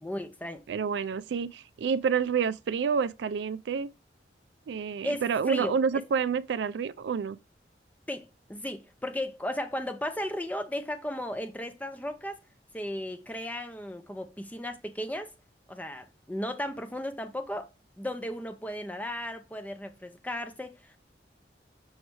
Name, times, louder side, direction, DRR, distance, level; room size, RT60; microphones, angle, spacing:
voice 1, 0.0-0.6 5.0-6.0 8.1-12.4 12.7-15.3 15.7-17.7 18.0-21.0, left 1 dB, 10° left, 0.6 m, -35 dB
voice 2, 0.7-3.9 4.7-7.4, right 6 dB, 75° right, 0.3 m, -28 dB
6.3 x 3.2 x 4.6 m
head